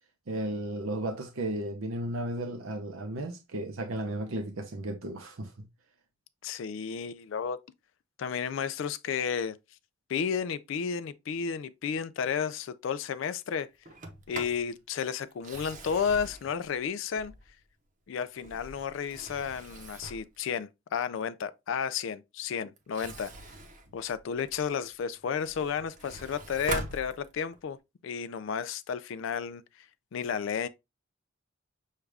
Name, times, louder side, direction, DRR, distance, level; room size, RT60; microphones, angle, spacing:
voice 1, 0.3-5.5, right 1 dB, 80° right, 0.7 m, -34 dB
voice 2, 6.4-7.6 8.2-9.6 10.1-13.7 14.3-17.3 18.1-23.3 23.9-27.8 28.0-29.6 30.1-30.7, left 7 dB, 65° left, 0.3 m, -32 dB
Sliding door, 13.8-14.7 15.3-17.6 18.2-20.4 22.8-24.7 25.2-27.7, right 2 dB, 40° right, 0.8 m, -42 dB
6.5 x 2.4 x 3.3 m
head